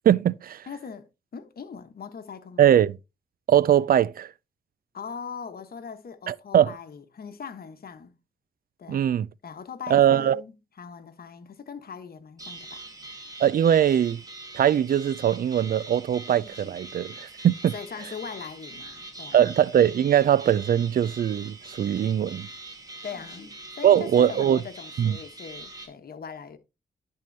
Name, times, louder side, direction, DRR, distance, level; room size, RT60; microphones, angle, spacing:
voice 1, 0.1-0.6 2.6-3.0 3.5-4.3 6.3-6.7 8.9-9.3 9.9-10.4 13.4-14.2 14.5-17.7 19.3-22.5 23.8-24.6 25.0-25.2, right 10 dB, 55° right, 0.4 m, -21 dB
voice 2, 0.7-2.7 4.9-8.1 8.8-9.1 9.4-12.8 17.7-19.5 23.0-26.6, left 6 dB, 55° left, 1.2 m, -40 dB
sound 1, 12.4-25.9, right 2 dB, 20° right, 2.2 m, -43 dB
10.5 x 3.8 x 4.0 m
cardioid pair, 75°, 18 cm